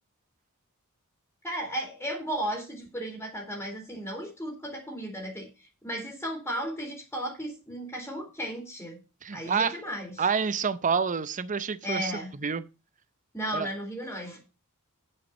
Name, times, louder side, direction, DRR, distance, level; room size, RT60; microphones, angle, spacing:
voice 1, 1.4-9.0 9.3-10.2 11.8-12.3 13.3-14.4, equal, 10° left, 2.6 m, -35 dB
voice 2, 9.2-9.8 10.2-12.1 12.4-12.6 13.5-13.7, right 6 dB, 35° right, 0.6 m, -28 dB
9.8 x 6.5 x 5.4 m
head